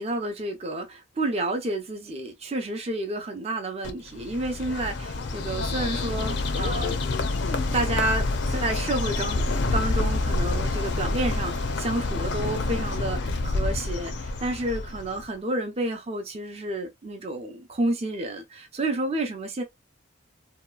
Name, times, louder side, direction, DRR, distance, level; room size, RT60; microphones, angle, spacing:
voice 1, 0.0-7.0 7.7-19.6, right 2 dB, 30° right, 0.6 m, -30 dB
Bird, 3.8-15.2, left 2 dB, 60° left, 0.5 m, -27 dB
2.9 x 2.2 x 2.3 m
head